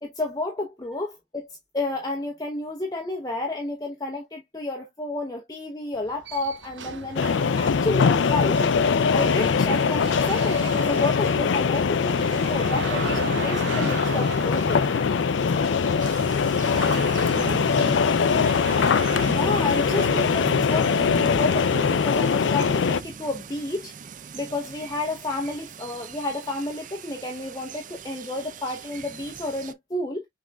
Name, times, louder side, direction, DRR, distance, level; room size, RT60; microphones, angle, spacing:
voice 1, 0.0-7.2 7.6-14.9 19.3-23.9 24.3-30.3, left 2 dB, 20° left, 0.8 m, -31 dB
sound 1, 5.9-21.1, right 5 dB, 75° right, 0.8 m, -37 dB
sound 2, 7.2-23.0, left 5 dB, 80° left, 0.4 m, -22 dB
sound 3, 16.0-29.7, right 4 dB, 45° right, 0.4 m, -39 dB
voice 2, 16.3-16.4, right 1 dB, ahead, 2.0 m, -47 dB
6.0 x 3.6 x 2.2 m
head